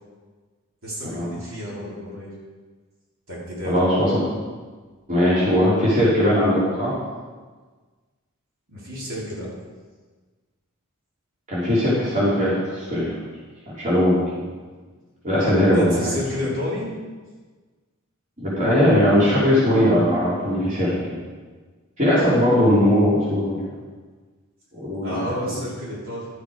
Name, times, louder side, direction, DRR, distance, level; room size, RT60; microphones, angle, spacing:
voice 1, 0.8-2.3 3.3-4.0 8.7-9.5 15.7-16.9 25.0-26.3, equal, 65° right, -6 dB, 3.9 m, -30 dB
voice 2, 3.6-4.2 5.1-6.9 11.5-13.1 13.7-14.4 15.2-16.1 18.4-21.2 22.0-23.6 24.8-25.2, equal, 35° right, -8 dB, 3.3 m, -19 dB
12.0 x 8.6 x 4.9 m, 1.4 s
head